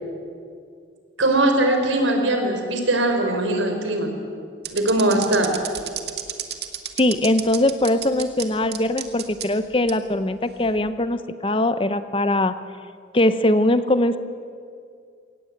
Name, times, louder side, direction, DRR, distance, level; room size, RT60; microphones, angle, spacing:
voice 1, 1.2-4.1 4.7-5.5, right 1 dB, 90° right, 4 dB, 4.3 m, -20 dB
sound 1, 4.6-8.5 8.7-9.5 9.9-10.0 10.6-10.9, right 11 dB, 55° right, 1.9 m, -31 dB
voice 2, 7.0-12.5 13.1-14.2, left 1 dB, 30° left, 12 dB, 0.8 m, -21 dB
22.5 x 18.0 x 9.3 m, 2.2 s
head